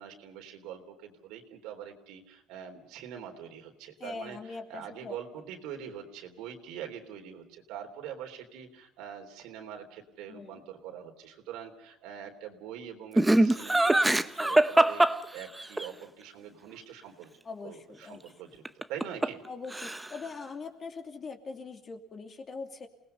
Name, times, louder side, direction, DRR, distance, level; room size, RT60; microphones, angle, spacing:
voice 1, 0.0-17.3 17.6-18.6 18.9-19.4, right 9 dB, 80° right, 4 dB, 3.5 m, -44 dB
voice 2, 4.0-5.2 10.3-10.6 17.4-18.2 19.4-22.9, left 4 dB, 35° left, 4 dB, 2.9 m, -42 dB
Laughter, 13.2-15.9 18.6-19.5 19.7-20.3, right 1 dB, 10° right, 0.9 m, -23 dB
28.5 x 19.0 x 5.6 m, 0.91 s
cardioid pair, 105°, 0 cm